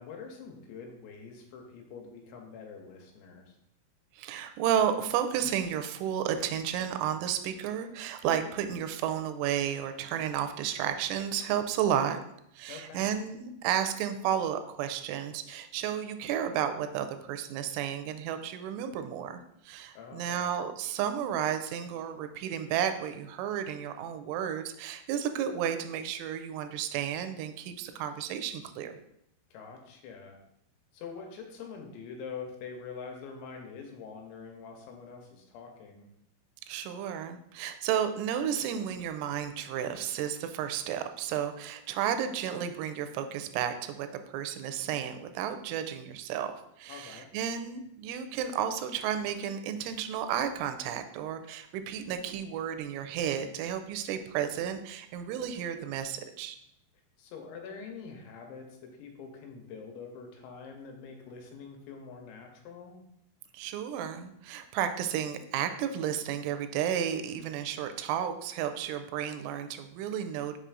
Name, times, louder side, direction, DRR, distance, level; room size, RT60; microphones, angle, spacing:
voice 1, 0.0-3.6 12.7-13.0 19.9-20.5 29.5-30.4 30.9-36.0 46.9-47.3 57.2-63.0, left 5 dB, 85° left, 2 dB, 2.9 m, -45 dB
voice 2, 4.1-12.2 12.6-29.0 36.7-56.6 63.5-70.6, right 9 dB, 85° right, 8 dB, 3.0 m, -32 dB
6.8 x 5.6 x 2.5 m, 0.78 s
omnidirectional pair, 5.4 m